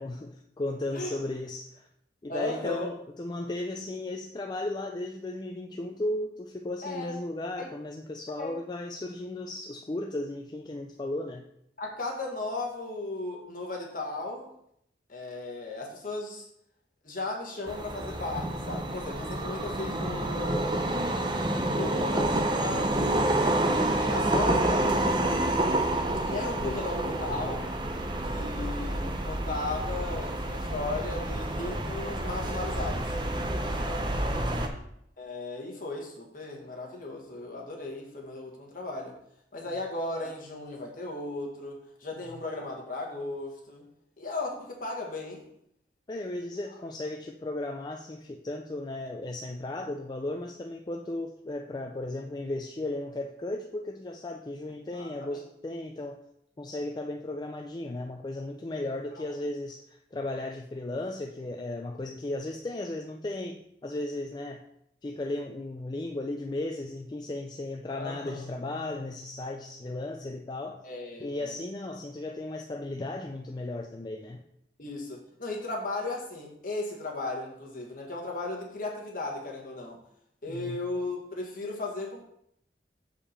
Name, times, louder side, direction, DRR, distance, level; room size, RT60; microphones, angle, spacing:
voice 1, 0.0-1.9 2.2-11.5 19.2-19.5 26.5-26.8 34.2-34.8 42.3-42.4 46.1-56.2 56.6-64.6 65.0-70.8 71.2-74.4 80.5-80.8, left 2 dB, 25° left, 3 dB, 0.4 m, -35 dB
voice 2, 2.3-2.9 6.8-7.1 7.6-7.7 8.4-8.6 11.8-14.5 15.1-16.5 17.0-20.8 21.5-23.4 24.0-25.4 26.2-27.6 28.2-33.1 33.8-34.1 35.2-39.1 39.5-43.8 44.2-45.5 54.9-55.4 67.9-68.4 70.8-71.5 74.8-80.0 80.4-82.2, left 2 dB, 50° left, 0 dB, 1.6 m, -36 dB
sound 1, 17.7-34.7, right 1 dB, 25° right, 0.7 m, -28 dB
Keyboard (musical), 68.2-72.0, left 2 dB, 75° left, 1.0 m, -51 dB
6.7 x 5.0 x 4.3 m, 0.74 s
head